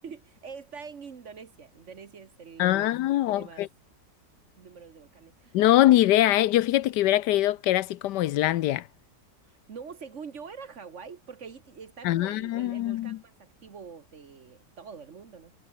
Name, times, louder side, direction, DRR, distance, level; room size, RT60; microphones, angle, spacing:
voice 1, 0.0-3.0 3.3-3.6 4.6-5.6 9.4-15.5, right 6 dB, 45° right, 1.4 m, -45 dB
voice 2, 2.6-3.7 5.5-8.9 12.0-13.2, left 14 dB, 75° left, 1.2 m, -23 dB
omnidirectional pair, 1.9 m